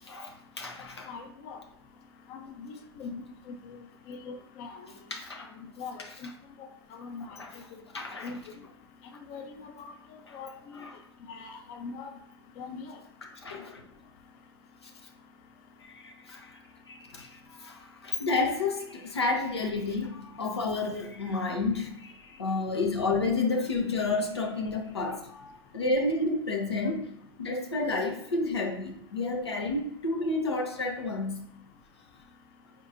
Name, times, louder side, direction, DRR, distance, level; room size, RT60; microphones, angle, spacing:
voice 1, 0.0-1.1 5.1-5.5 6.0-6.1 7.2-7.6 7.9-8.4 10.3-10.4 10.7-10.9 13.2-13.9 15.8-16.6 16.9-27.1 27.4-31.5, left 3 dB, 85° left, 0.7 m, -31 dB
voice 2, 1.1-1.6 2.3-3.8 4.1-4.8 5.8-6.3 6.6-6.7 7.0-7.4 8.2-8.4 9.3-9.9 10.3-10.8 11.3-12.1 12.6-13.0, left 4 dB, 50° left, 0.6 m, -41 dB
4.2 x 3.7 x 2.5 m
figure-of-eight pair, 90°, 13 cm